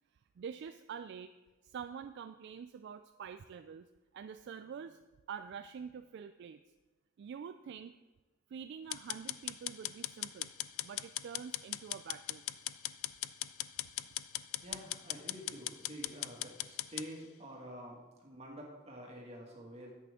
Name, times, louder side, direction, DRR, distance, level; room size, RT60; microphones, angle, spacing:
voice 1, 0.1-1.3 1.6-3.9 4.1-5.0 5.3-6.6 7.2-7.9 8.5-10.5 10.8-12.4, right 7 dB, 60° right, 9 dB, 0.3 m, -46 dB
sound 1, 8.9-17.1, left 15 dB, 90° left, 0.4 m, -39 dB
voice 2, 14.6-19.9, equal, 30° right, -2 dB, 2.0 m, -48 dB
10.0 x 8.4 x 3.6 m, 1.2 s
head